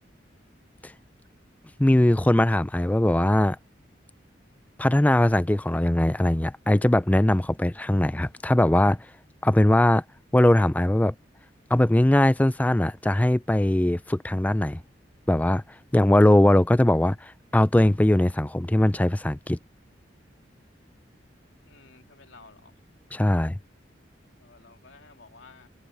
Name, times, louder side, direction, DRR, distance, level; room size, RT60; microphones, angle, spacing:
voice 1, 1.8-3.6 4.8-9.0 9.4-10.0 10.3-11.1 11.7-14.8 15.3-15.6 15.9-19.6 23.1-23.6, left 1 dB, 10° left, 0.4 m, -20 dB
voice 2, 21.6-22.8 24.4-25.7, left 4 dB, 85° left, 2.7 m, -52 dB
head